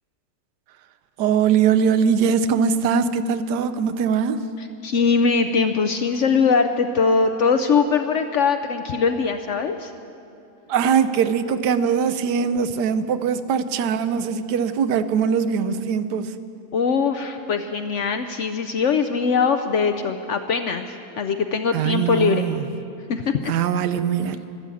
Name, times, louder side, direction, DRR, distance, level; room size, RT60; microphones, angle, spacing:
voice 1, 1.2-4.4 10.7-16.3 21.7-22.6 23.5-24.4, right 7 dB, 85° right, 10 dB, 1.3 m, -21 dB
voice 2, 4.6-9.9 16.7-22.5 23.1-23.5, left 5 dB, 65° left, 7 dB, 0.7 m, -21 dB
12.5 x 12.0 x 8.4 m, 2.6 s
omnidirectional pair, 1.7 m